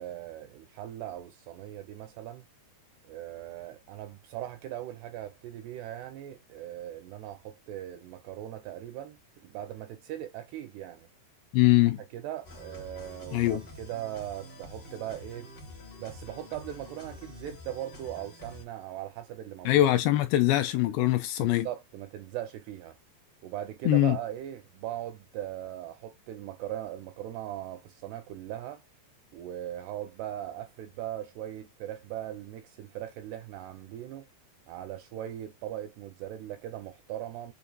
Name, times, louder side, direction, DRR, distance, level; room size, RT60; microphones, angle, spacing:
voice 1, 0.0-2.5 3.0-11.1 12.0-15.5 16.0-19.9 21.4-23.0 23.4-28.8 29.3-34.3 34.7-37.5, right 12 dB, 85° right, 2.4 m, -39 dB
voice 2, 11.5-12.0 13.3-13.6 19.7-21.7 23.8-24.2, left 15 dB, 85° left, 2.5 m, -23 dB
sound 1, 12.4-18.6, left 1 dB, 50° left, 1.1 m, -47 dB
7.0 x 2.7 x 2.3 m
omnidirectional pair, 5.2 m